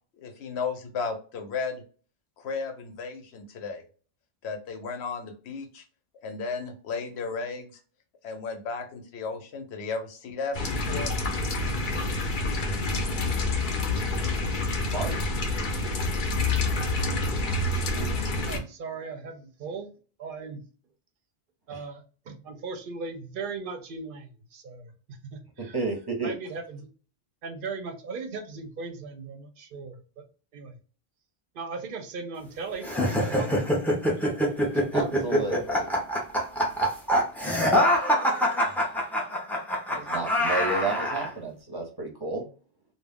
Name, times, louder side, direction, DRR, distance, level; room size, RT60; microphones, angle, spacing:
voice 1, 0.2-1.8 2.4-3.8 4.4-5.8 6.2-7.7 8.2-11.1, left 4 dB, 80° left, 6 dB, 0.9 m, -34 dB
sound 1, 10.5-18.6, left 2 dB, 55° left, 0.7 m, -27 dB
voice 2, 14.9-15.3 18.0-18.1 21.7-21.8 25.6-26.3 34.9-35.9 38.6-39.3 39.9-42.5, right 3 dB, 25° right, 0 dB, 0.7 m, -32 dB
voice 3, 18.5-19.9 20.2-20.6 21.7-25.7 26.2-26.9 27.4-30.2 30.5-30.8 31.5-33.5 33.9-34.2, right 4 dB, 60° right, 5 dB, 0.7 m, -38 dB
sound 2, 32.8-41.3, equal, 5° left, 0.3 m, -25 dB
2.3 x 2.1 x 3.4 m, 0.38 s
omnidirectional pair, 1.1 m